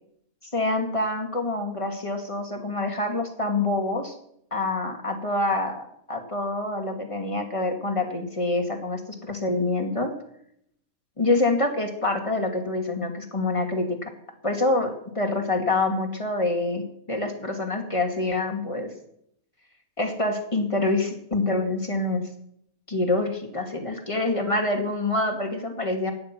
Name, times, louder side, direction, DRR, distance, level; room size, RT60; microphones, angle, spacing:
voice 1, 0.5-4.1 4.5-10.1 11.2-14.1 14.4-18.9 20.0-22.3 22.9-26.1, left 2 dB, 20° left, 3 dB, 2.5 m, -26 dB
17.0 x 10.5 x 6.0 m, 0.73 s
omnidirectional pair, 1.5 m